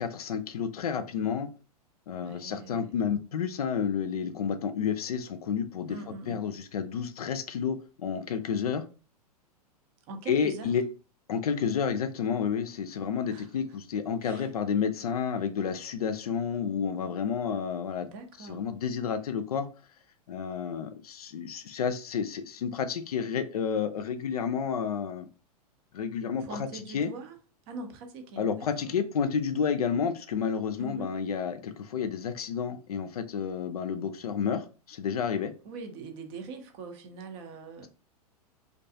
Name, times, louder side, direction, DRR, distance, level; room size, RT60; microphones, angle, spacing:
voice 1, 0.0-1.5 2.1-6.0 6.3-8.8 10.3-10.8 11.3-18.1 18.4-19.7 20.3-25.3 25.9-27.1 28.4-35.5, left 7 dB, 70° left, 0.4 m, -30 dB
voice 2, 2.2-3.0 5.9-6.4 10.1-10.7 13.3-13.5 14.2-14.5 18.0-18.6 26.4-27.4 27.7-28.9 30.8-31.1 35.6-37.9, right 4 dB, 40° right, 0.6 m, -42 dB
2.5 x 2.2 x 2.6 m
figure-of-eight pair, 100°, 20 cm